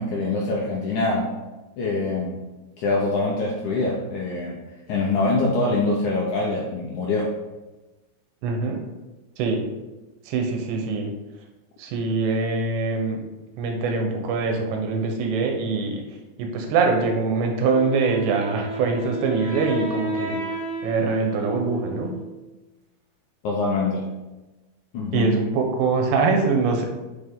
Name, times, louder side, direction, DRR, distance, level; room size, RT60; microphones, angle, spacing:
voice 1, 0.0-1.4 1.8-2.4 2.8-4.6 4.9-7.3 23.4-24.1 24.9-25.4, left 2 dB, 85° left, -3 dB, 1.7 m, -24 dB
voice 2, 8.4-8.8 9.4-9.6 10.3-11.1 11.8-13.2 13.6-16.0 16.4-20.6 20.8-22.2 25.1-26.8, right 4 dB, 90° right, 3 dB, 3.4 m, -23 dB
Wind instrument woodwind instrument, 17.7-22.5, right 1 dB, 20° right, 0.7 m, -32 dB
9.2 x 5.6 x 3.7 m, 1.1 s
omnidirectional pair, 4.9 m